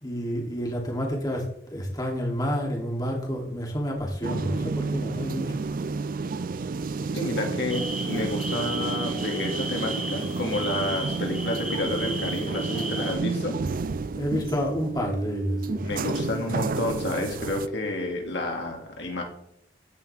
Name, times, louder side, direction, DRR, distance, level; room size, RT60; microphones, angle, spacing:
voice 1, 0.0-5.5 14.1-15.8, equal, 20° left, -1 dB, 2.9 m, -29 dB
sound 1, 4.2-17.7, right 4 dB, 50° right, 0.5 m, -31 dB
voice 2, 7.1-13.6 15.8-19.2, left 1 dB, 70° left, 1 dB, 2.4 m, -30 dB
sound 2, 7.7-13.1, right 1 dB, 5° right, 4.8 m, -35 dB
15.5 x 10.5 x 3.5 m, 0.72 s
head